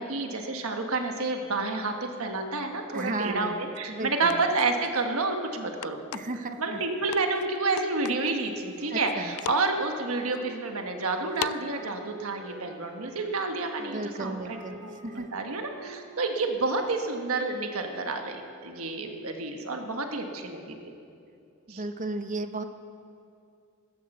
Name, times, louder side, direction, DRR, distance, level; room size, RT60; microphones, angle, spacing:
voice 1, 0.0-6.0 6.6-14.9 15.3-20.9 21.7-21.8, right 3 dB, 70° right, 4 dB, 1.4 m, -29 dB
voice 2, 2.9-3.6 3.9-4.5 6.1-6.8 8.9-9.3 13.8-15.3 21.7-22.6, right 2 dB, 35° right, 8 dB, 0.9 m, -34 dB
sound 1, 3.8-3.9 4.3-5.0 5.8-6.4 7.1-7.5 7.8-8.3 8.8-9.1 9.4-9.7 10.3-10.4 11.4-11.6, left 11 dB, 90° left, 0.3 m, -36 dB
sound 2, 8.3-18.8, right 3 dB, 90° right, 2.8 m, -50 dB
16.0 x 13.5 x 6.7 m, 2.5 s
head